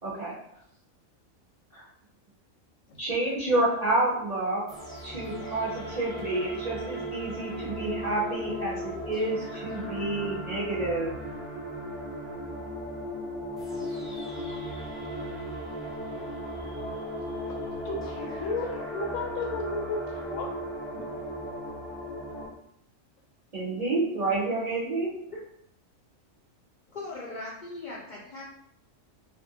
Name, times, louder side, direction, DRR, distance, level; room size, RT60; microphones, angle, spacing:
voice 1, 0.0-0.3 1.7-1.8 3.0-4.6 5.0-11.2 23.5-25.1, right 2 dB, 55° right, -7 dB, 0.4 m, -29 dB
sound 1, 4.7-22.5, equal, ahead, 0.8 m, -36 dB
voice 2, 17.8-20.5 20.9-21.2 22.5-22.6, left 3 dB, 80° left, 1 dB, 1.0 m, -34 dB
voice 3, 26.9-28.4, left 2 dB, 65° left, -5 dB, 0.4 m, -39 dB
2.5 x 2.5 x 2.7 m, 0.74 s
omnidirectional pair, 1.4 m